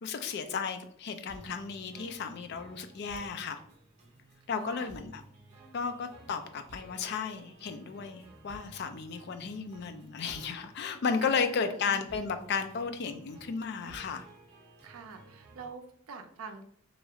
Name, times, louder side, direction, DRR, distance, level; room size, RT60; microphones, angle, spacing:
voice 1, 0.0-3.6 4.5-5.2 5.7-14.2, left 5 dB, 50° left, 8 dB, 0.3 m, -34 dB
sound 1, 1.3-15.7, right 1 dB, 30° right, 0.7 m, -54 dB
voice 2, 4.5-4.9 11.2-11.8 14.8-16.6, right 4 dB, 85° right, 6 dB, 0.4 m, -45 dB
3.0 x 2.4 x 2.7 m, 0.64 s
head